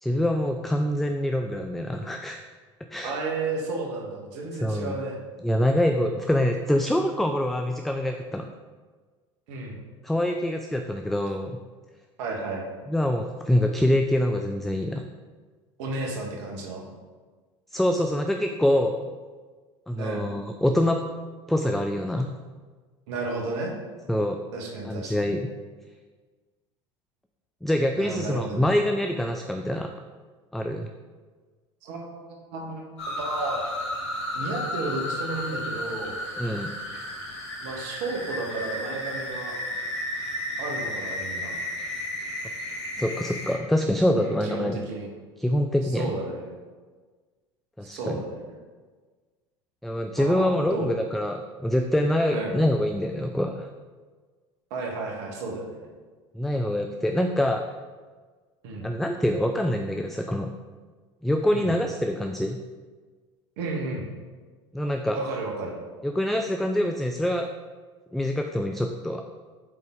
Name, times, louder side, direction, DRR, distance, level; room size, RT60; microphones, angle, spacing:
voice 1, 0.0-2.4 2.9-3.2 4.6-4.9 5.4-8.5 10.0-11.6 12.9-15.0 17.7-19.0 19.9-21.0 21.5-22.3 24.1-24.4 24.8-25.4 27.6-29.9 30.5-30.9 36.4-36.7 43.0-44.8 45.4-46.1 47.8-48.2 49.8-53.7 56.3-57.6 58.8-60.5 61.2-62.6 64.7-65.2 66.0-67.5 68.1-69.2, left 1 dB, ahead, 5 dB, 0.4 m, -25 dB
voice 2, 3.0-5.2 9.5-9.8 12.2-12.7 15.8-16.8 20.0-20.3 23.1-23.7 24.5-25.3 27.9-28.7 31.8-33.6 34.3-36.2 37.6-39.5 40.6-41.5 44.2-45.1 45.8-46.6 47.9-48.4 50.2-50.9 52.3-52.6 54.7-55.9 58.6-58.9 61.5-61.7 63.6-64.1 65.1-65.8, right 3 dB, 65° right, 0 dB, 1.5 m, -33 dB
sound 1, 33.0-43.5, left 1 dB, 75° left, 1.7 m, -33 dB
8.3 x 3.9 x 3.7 m, 1.4 s
hypercardioid pair, 80°, 15 cm